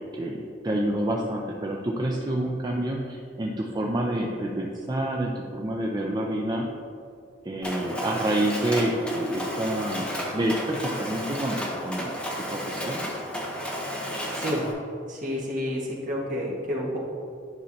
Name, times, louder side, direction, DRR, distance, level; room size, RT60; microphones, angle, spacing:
voice 1, 0.0-6.7 7.4-12.1 12.5-13.0, right 1 dB, 20° right, -1 dB, 0.4 m, -28 dB
Mechanisms, 7.6-14.7, equal, 5° left, 0.9 m, -32 dB
voice 2, 15.1-17.0, equal, 45° right, -4 dB, 1.6 m, -30 dB
10.5 x 5.5 x 2.8 m, 2.4 s
head